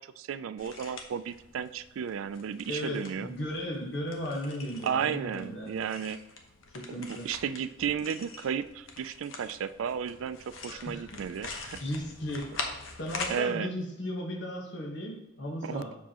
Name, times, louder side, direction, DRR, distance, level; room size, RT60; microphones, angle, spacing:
voice 1, 0.0-3.3 4.8-6.2 7.0-11.8 13.3-13.7 15.6-15.8, right 7 dB, 85° right, 14 dB, 0.3 m, -33 dB
sound 1, 0.6-13.4, left 3 dB, 80° left, 0.9 m, -44 dB
voice 2, 2.7-5.7 6.7-7.3 10.6-12.5 13.0-16.0, left 1 dB, 60° left, 0 dB, 1.2 m, -36 dB
7.3 x 5.9 x 2.9 m, 0.97 s
head